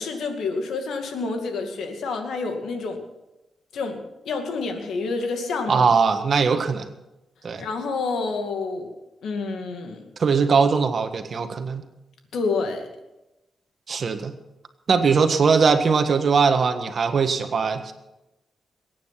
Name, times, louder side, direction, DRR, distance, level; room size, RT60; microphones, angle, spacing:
voice 1, 0.0-3.0 3.7-5.9 7.6-8.9 9.2-10.1 12.3-12.9, left 4 dB, 85° left, 4 dB, 2.4 m, -28 dB
voice 2, 5.7-6.9 7.4-7.6 10.2-11.8 13.9-14.3 14.9-17.9, right 5 dB, 55° right, 8 dB, 1.6 m, -20 dB
22.0 x 9.5 x 5.9 m, 0.96 s
cardioid pair, 100°, 0 cm